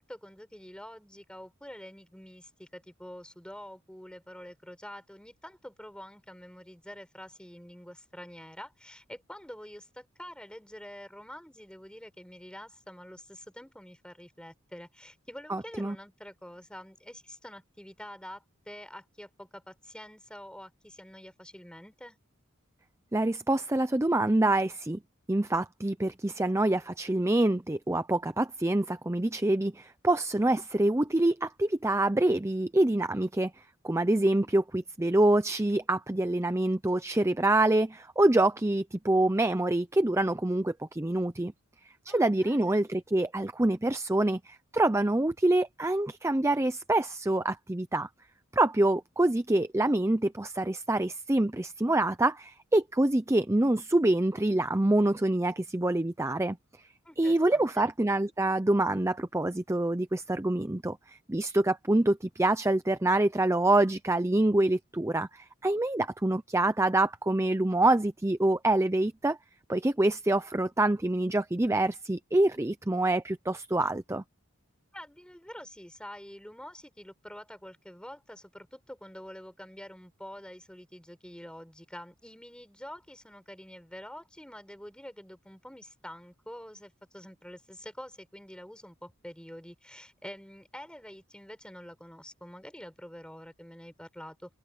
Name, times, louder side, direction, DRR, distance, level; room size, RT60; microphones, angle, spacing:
voice 1, 0.0-22.2 42.1-42.8 57.0-57.9 74.9-94.5, equal, 5° left, 6.0 m, -47 dB
voice 2, 15.5-16.0 23.1-25.0 25.3-33.5 33.8-41.5 42.1-48.1 48.5-56.6 57.2-69.4 69.7-74.2, right 2 dB, 15° right, 0.6 m, -26 dB
head